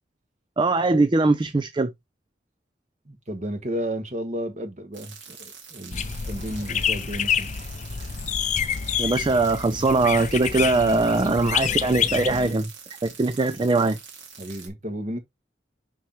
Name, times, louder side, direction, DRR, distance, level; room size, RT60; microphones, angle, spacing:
voice 1, 0.6-1.9 9.0-12.7 13.0-14.0, right 3 dB, 25° right, 0.4 m, -21 dB
voice 2, 3.0-7.5 14.4-15.2, equal, 40° right, 1.5 m, -33 dB
sound 1, 4.9-14.7, right 6 dB, 85° right, 2.3 m, -45 dB
sound 2, 5.9-12.5, left 7 dB, 40° left, 0.5 m, -28 dB
6.2 x 5.7 x 3.0 m
head